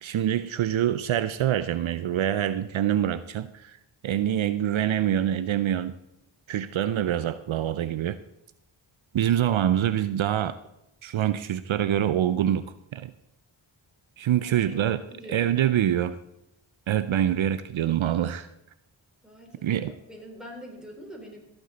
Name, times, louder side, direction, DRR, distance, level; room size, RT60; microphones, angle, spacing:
voice 1, 0.0-3.8 4.0-5.9 6.5-8.2 9.1-10.5 11.0-12.6 12.9-13.1 14.2-15.0 15.3-16.2 16.9-18.5 19.6-19.9, right 11 dB, 75° right, 13 dB, 0.6 m, -25 dB
voice 2, 14.4-15.6 19.2-21.4, equal, ahead, 0 dB, 3.9 m, -45 dB
16.0 x 8.1 x 4.0 m, 0.84 s
cardioid pair, 55°, 48 cm